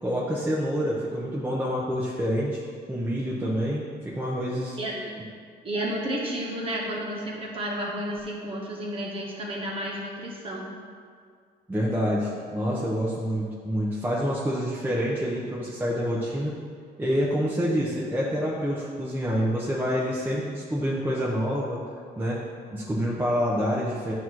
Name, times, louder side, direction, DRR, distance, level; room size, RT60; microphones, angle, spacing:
voice 1, 0.0-2.6 2.9-4.8 11.7-16.5 17.0-21.9 22.2-24.1, equal, 10° right, -5 dB, 1.0 m, -27 dB
voice 2, 4.8-5.1 5.6-10.7, right 1 dB, 35° right, -3 dB, 1.6 m, -31 dB
9.1 x 3.2 x 6.0 m, 2.1 s
cardioid pair, 110°, 17 cm